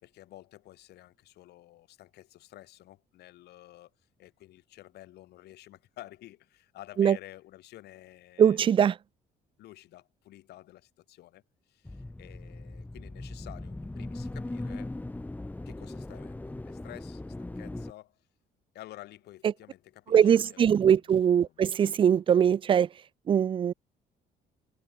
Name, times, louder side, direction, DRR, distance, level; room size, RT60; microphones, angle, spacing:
voice 1, 0.0-3.9 4.2-8.8 9.6-14.9 15.6-18.2 18.7-20.8 21.4-21.7, left 15 dB, 75° left, 4.5 m, -51 dB
voice 2, 8.4-9.0 20.1-22.9 23.3-23.7, right 8 dB, 30° right, 0.4 m, -22 dB
sound 1, 11.9-17.9, left 2 dB, 10° left, 2.1 m, -39 dB
cardioid pair, 110°, 17 cm